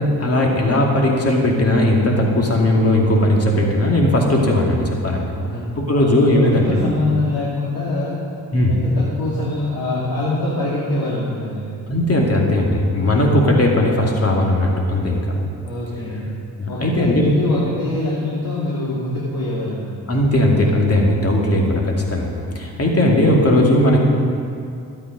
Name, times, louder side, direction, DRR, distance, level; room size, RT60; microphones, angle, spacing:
voice 1, 0.0-5.3 5.8-6.8 8.5-8.8 11.9-15.3 16.6-17.3 20.1-22.3 22.5-24.0, left 1 dB, 30° left, -1 dB, 2.5 m, -17 dB
voice 2, 6.0-8.2 8.7-11.7 15.6-16.3 16.7-20.0, left 2 dB, 50° left, -7 dB, 2.7 m, -24 dB
12.5 x 8.6 x 5.3 m, 2.5 s
hypercardioid pair, 45°, 47 cm